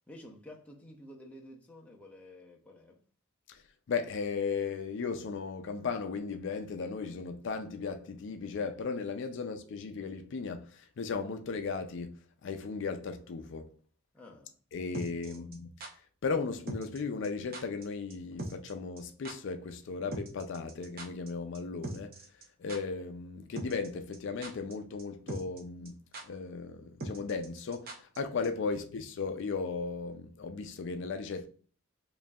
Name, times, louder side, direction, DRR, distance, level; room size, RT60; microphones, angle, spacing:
voice 1, 0.1-3.0 9.4-9.5 14.1-14.5 15.2-15.5, left 1 dB, 5° left, 0.6 m, -51 dB
voice 2, 3.9-13.7 14.7-15.7 16.2-22.2 22.6-31.5, left 4 dB, 60° left, 0.4 m, -36 dB
sound 1, 14.9-15.9 16.7-17.0 17.2-17.3 17.5-17.8 18.1-18.2 18.4-18.7 19.0-19.1 19.2-19.3 20.1-21.3 21.5-21.6 21.8-22.4 22.7-22.8 23.6-23.9 24.1-24.7 25.0-25.1 25.3-25.6 25.8-25.9 26.1-26.2 27.0-28.2 28.4-28.5, right 2 dB, 45° right, 0.7 m, -40 dB
4.9 x 2.6 x 2.3 m
head